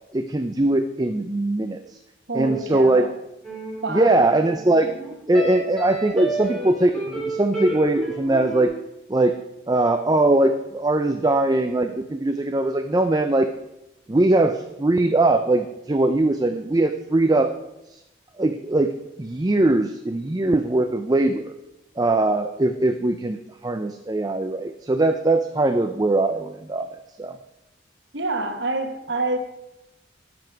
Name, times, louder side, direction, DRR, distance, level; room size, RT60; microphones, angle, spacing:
voice 1, 0.1-2.0 2.3-3.1 3.9-4.9 5.3-8.8 9.1-9.4 9.7-13.5 14.1-17.6 17.9-18.0 18.4-21.6 22.0-26.9 27.2-27.4, right 2 dB, 20° right, 7 dB, 0.4 m, -21 dB
voice 2, 2.3-3.1 3.8-4.2 28.1-29.4, right 3 dB, 60° right, 7 dB, 1.2 m, -27 dB
sound 1, 3.4-8.6, right 2 dB, 5° left, 3.9 m, -31 dB
12.0 x 7.9 x 4.6 m, 0.90 s
head